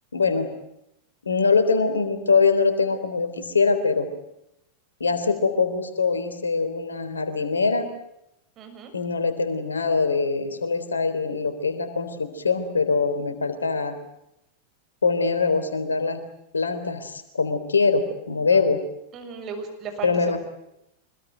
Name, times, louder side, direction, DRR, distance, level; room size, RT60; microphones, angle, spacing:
voice 1, 0.1-0.5 1.2-4.1 5.0-7.9 8.9-14.0 15.0-16.2 16.5-18.8 20.0-20.4, left 4 dB, 75° left, 10 dB, 3.5 m, -23 dB
voice 2, 8.6-8.9 19.1-20.4, right 5 dB, 30° right, 5 dB, 6.6 m, -36 dB
25.0 x 21.5 x 9.3 m, 0.82 s
figure-of-eight pair, 90°, 0 cm